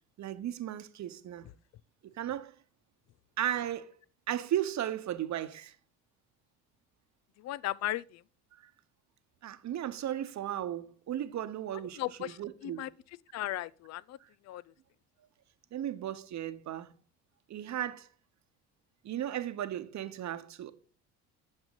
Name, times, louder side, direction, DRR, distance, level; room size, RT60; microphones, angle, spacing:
voice 1, 0.2-1.4 2.2-2.5 3.4-3.9 4.3-5.7 9.4-12.9 15.7-16.9 17.5-18.1 19.0-20.7, right 11 dB, 50° right, 1.0 m, -35 dB
voice 2, 7.4-8.2 12.0-12.9 13.3-14.2 14.5-14.6, left 15 dB, 45° left, 0.5 m, -36 dB
8.8 x 7.1 x 4.0 m
hypercardioid pair, 60°, 38 cm